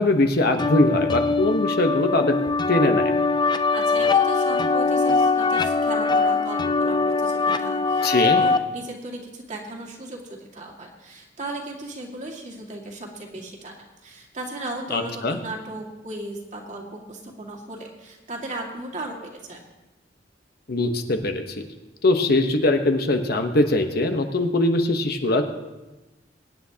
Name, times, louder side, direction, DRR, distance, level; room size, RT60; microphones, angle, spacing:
voice 1, 0.0-2.3 2.7-3.1 8.0-8.4 14.9-15.4 20.7-21.6 22.0-25.5, left 2 dB, 60° left, 5 dB, 1.1 m, -21 dB
sound 1, 0.6-8.6, left 4 dB, 25° left, 0.4 m, -22 dB
voice 2, 3.4-13.7 14.0-19.6, right 2 dB, 45° right, 0 dB, 2.0 m, -36 dB
23.0 x 9.6 x 2.9 m, 1.1 s
head